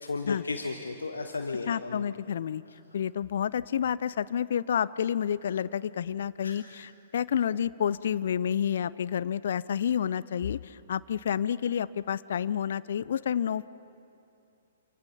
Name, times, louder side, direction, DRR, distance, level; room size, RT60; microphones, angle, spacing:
voice 1, 0.0-2.0 6.4-6.6, left 3 dB, 70° left, 5 dB, 1.2 m, -34 dB
voice 2, 1.7-2.6 2.9-13.7, left 8 dB, 55° left, 17 dB, 0.5 m, -29 dB
27.5 x 24.5 x 5.7 m, 2.7 s
figure-of-eight pair, 115°, 0 cm